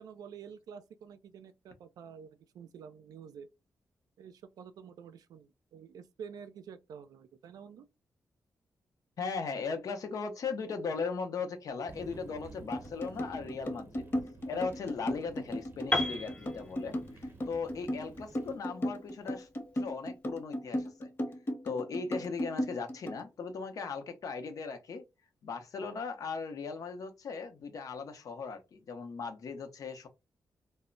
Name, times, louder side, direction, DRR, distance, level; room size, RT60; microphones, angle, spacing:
voice 1, 0.0-3.5 4.2-7.9, right 7 dB, 85° right, 0.4 m, -49 dB
voice 2, 9.2-14.0 14.5-19.5 19.7-21.1 21.6-25.0 25.4-30.1, left 5 dB, 70° left, 0.6 m, -38 dB
sound 1, 11.9-18.6, right 2 dB, 35° right, 0.7 m, -52 dB
sound 2, 12.7-23.2, equal, 40° left, 0.8 m, -35 dB
Piano, 15.9-19.8, left 2 dB, 20° left, 0.4 m, -36 dB
2.1 x 2.1 x 3.7 m
cardioid pair, 75°, 6 cm